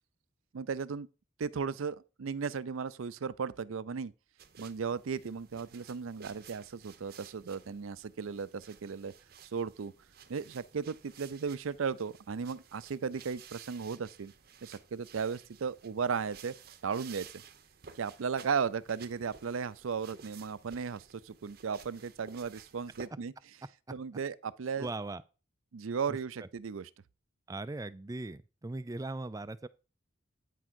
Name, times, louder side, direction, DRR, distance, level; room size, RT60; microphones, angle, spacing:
voice 1, 0.5-1.1 1.4-4.1 4.6-9.1 9.5-9.9 10.3-14.3 14.6-16.5 16.8-17.4 18.0-23.3 23.9-24.9 25.7-26.9, right 6 dB, 85° right, 0.5 m, -36 dB
sound 1, 4.4-23.1, right 7 dB, 50° right, 0.7 m, -55 dB
voice 2, 24.8-25.2 26.1-26.5 27.5-29.7, right 2 dB, 15° right, 0.3 m, -39 dB
9.2 x 3.7 x 6.1 m
head